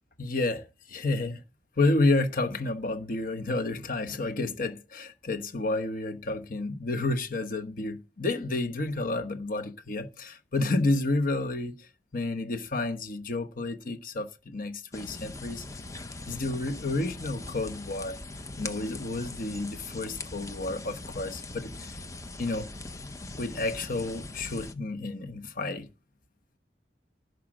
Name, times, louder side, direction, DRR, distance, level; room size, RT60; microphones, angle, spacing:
voice 1, 0.2-1.4 1.8-15.6 16.3-18.2 18.6-22.0 22.4-22.7 23.3-25.9, left 2 dB, 50° left, 1.2 m, -30 dB
sound 1, 14.9-24.7, left 2 dB, 15° left, 0.7 m, -41 dB
11.5 x 5.0 x 7.4 m
head